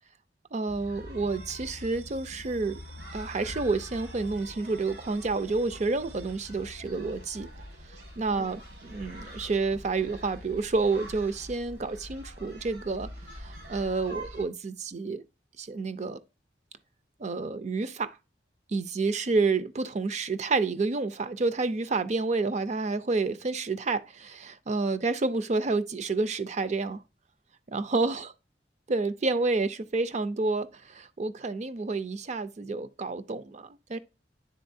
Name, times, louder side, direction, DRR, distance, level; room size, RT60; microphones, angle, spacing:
voice 1, 0.5-2.8 3.1-7.5 8.2-15.2 15.6-16.2 17.2-18.2 18.7-27.0 27.7-28.3 28.9-34.0, right 3 dB, 40° right, 0.5 m, -29 dB
sound 1, 0.7-14.4, equal, 80° right, 1.9 m, -44 dB
9.4 x 4.0 x 2.6 m
head